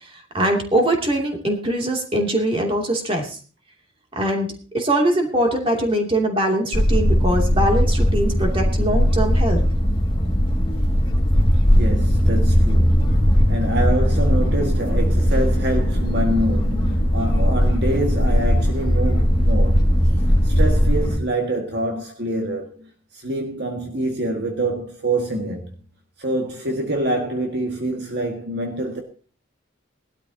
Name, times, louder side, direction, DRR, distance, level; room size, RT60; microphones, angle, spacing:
voice 1, 0.3-3.4 4.1-4.5 4.7-9.6, right 1 dB, 25° right, 2.8 m, -22 dB
sound 1, 6.7-21.2, equal, 25° left, 2.2 m, -18 dB
voice 2, 11.7-19.8 20.4-25.7 26.2-29.0, right 1 dB, 55° right, 1.9 m, -26 dB
20.0 x 12.5 x 2.9 m
head